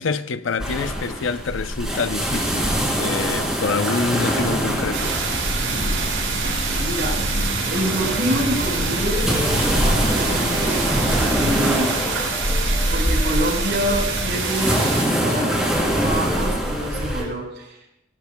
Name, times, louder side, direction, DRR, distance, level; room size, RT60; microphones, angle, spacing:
voice 1, 0.0-5.2 11.0-11.2 11.5-11.6, left 5 dB, 75° left, 0.6 m, -27 dB
sound 1, 0.6-17.2, equal, 5° right, 3.3 m, -24 dB
sound 2, 4.9-15.0, right 4 dB, 80° right, 5.4 m, -26 dB
voice 2, 6.8-7.2 7.6-12.0 12.9-14.8 15.2-17.8, equal, 55° right, 4.5 m, -27 dB
sound 3, 8.0-15.3 15.6-17.4, equal, 15° left, 2.1 m, -37 dB
18.5 x 17.5 x 2.3 m
head